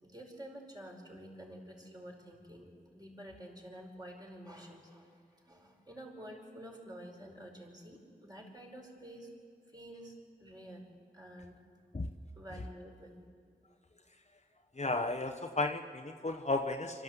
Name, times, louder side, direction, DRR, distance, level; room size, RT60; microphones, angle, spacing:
voice 1, 0.0-9.3 9.7-10.9 11.1-11.6 12.4-13.2, right 1 dB, 20° right, -1 dB, 4.9 m, -50 dB
voice 2, 14.8-17.0, left 2 dB, 40° left, 4 dB, 1.0 m, -34 dB
26.5 x 12.5 x 8.1 m, 2.1 s
wide cardioid pair, 45°, 18 cm